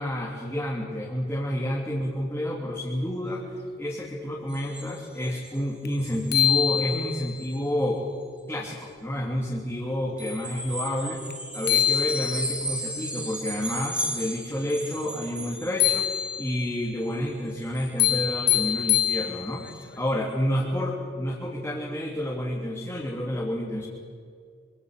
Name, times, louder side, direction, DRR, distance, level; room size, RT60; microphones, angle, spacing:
voice 1, 0.0-3.5 3.8-8.0 8.5-11.2 11.5-19.6 20.0-23.8, equal, 10° left, -4 dB, 3.1 m, -29 dB
sound 1, 4.5-5.6 5.9-6.4 6.8-6.9 7.4-7.6 10.2-16.7 17.0-18.2 18.5-18.6 18.8-19.2 19.7-19.8, right 1 dB, 5° right, 3.2 m, -36 dB
sound 2, 5.9-6.0 6.3-7.4 11.3-11.4 11.7-12.7 15.8-16.7 18.0-19.7, left 10 dB, 55° left, 1.5 m, -24 dB
27.0 x 25.5 x 6.7 m, 2.2 s
head